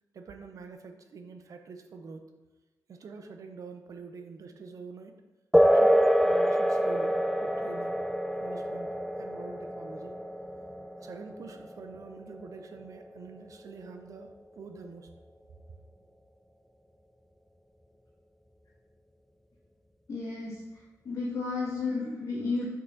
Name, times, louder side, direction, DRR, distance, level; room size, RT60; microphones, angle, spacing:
voice 1, 0.1-2.2 2.9-5.2 5.7-6.0 6.2-7.2 7.4-8.0 8.4-10.2 11.0-15.1, right 4 dB, 50° right, 6 dB, 0.7 m, -46 dB
sound 1, 5.5-13.5, equal, ahead, 0.3 m, -27 dB
voice 2, 20.1-22.7, left 3 dB, 50° left, -8 dB, 1.8 m, -33 dB
6.1 x 5.7 x 4.0 m, 1.2 s
wide cardioid pair, 155°, 7 cm